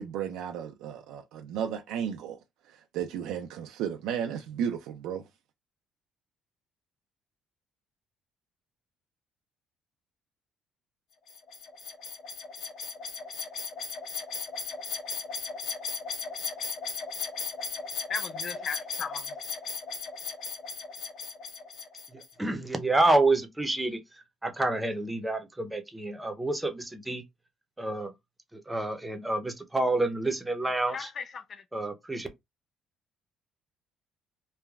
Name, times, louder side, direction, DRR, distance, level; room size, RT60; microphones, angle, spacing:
voice 1, 0.0-2.4 2.7-5.2, right 8 dB, 85° right, 0.4 m, -34 dB
sound 1, 11.3-22.3, left 5 dB, 65° left, 1.1 m, -37 dB
voice 2, 18.1-19.3 30.9-31.6, left 6 dB, 40° left, 0.4 m, -37 dB
voice 3, 22.4-24.0 24.4-27.2 27.8-28.1 28.5-31.0 31.7-32.3, right 2 dB, 10° right, 0.6 m, -28 dB
3.2 x 2.1 x 2.3 m
cardioid pair, 120°, 0 cm